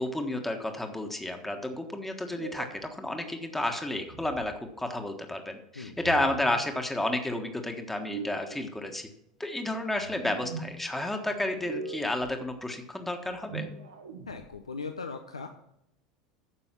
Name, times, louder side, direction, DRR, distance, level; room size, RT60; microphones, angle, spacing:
voice 1, 0.0-9.1 9.4-13.6, left 1 dB, 5° left, 4 dB, 1.4 m, -31 dB
sound 1, 2.2-2.8 3.9-4.5 5.9-6.6 7.9-8.6 9.9-10.7 11.4-12.3 13.3-14.5, right 4 dB, 80° right, 1.6 m, -41 dB
voice 2, 14.3-15.5, left 4 dB, 90° left, 6 dB, 0.7 m, -38 dB
10.0 x 6.9 x 6.0 m, 0.81 s
hypercardioid pair, 80°, 3 cm